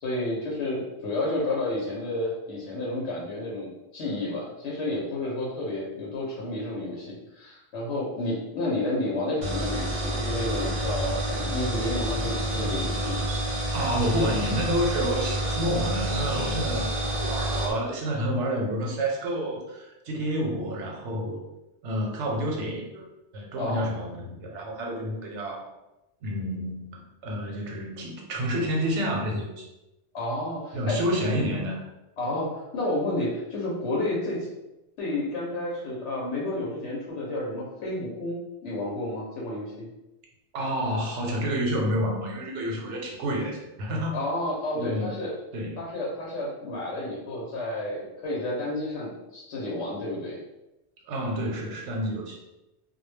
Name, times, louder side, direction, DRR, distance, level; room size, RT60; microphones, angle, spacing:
voice 1, 0.0-13.3 23.6-23.9 30.1-31.0 32.2-34.5 35.0-39.9 44.1-45.3 45.8-50.4, left 1 dB, 80° left, -4 dB, 0.9 m, -31 dB
sound 1, 9.4-17.7, right 1 dB, 50° right, 0.6 m, -29 dB
voice 2, 13.7-21.4 21.8-23.0 23.3-25.7 26.2-29.6 30.7-31.8 40.5-44.1 44.8-45.2 45.5-45.8 51.1-52.4, equal, 85° right, 0 dB, 0.9 m, -29 dB
2.2 x 2.1 x 3.2 m, 0.95 s
omnidirectional pair, 1.2 m